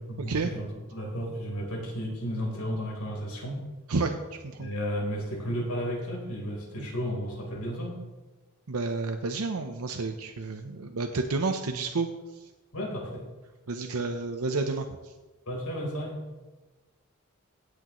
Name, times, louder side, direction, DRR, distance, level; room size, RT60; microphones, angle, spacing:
voice 1, 0.1-3.6 4.6-8.0 12.7-13.3 15.5-16.2, equal, 80° left, -1 dB, 3.9 m, -33 dB
voice 2, 8.7-12.1 13.7-15.1, right 3 dB, 90° right, 5 dB, 0.7 m, -30 dB
17.0 x 8.6 x 3.1 m, 1.2 s
head